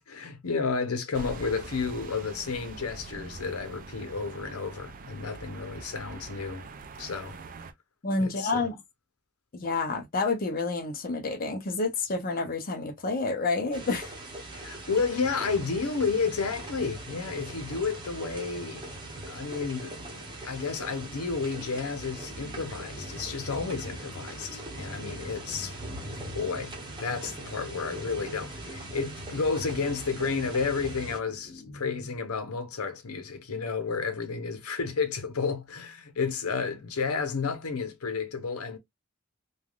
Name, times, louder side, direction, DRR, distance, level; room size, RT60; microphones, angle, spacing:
voice 1, 0.0-6.7 7.0-7.4 8.2-8.7 14.5-18.9 19.2-20.1 20.4-25.7 26.3-38.8, left 5 dB, 90° left, 0.7 m, -31 dB
sound 1, 1.1-7.7, right 4 dB, 40° right, 0.4 m, -44 dB
voice 2, 8.0-8.8 9.5-14.1, left 3 dB, 40° left, 0.7 m, -29 dB
sound 2, 13.7-31.2, right 1 dB, 20° right, 0.9 m, -41 dB
sound 3, 20.8-32.7, left 1 dB, 70° left, 1.0 m, -49 dB
3.3 x 2.3 x 2.3 m
head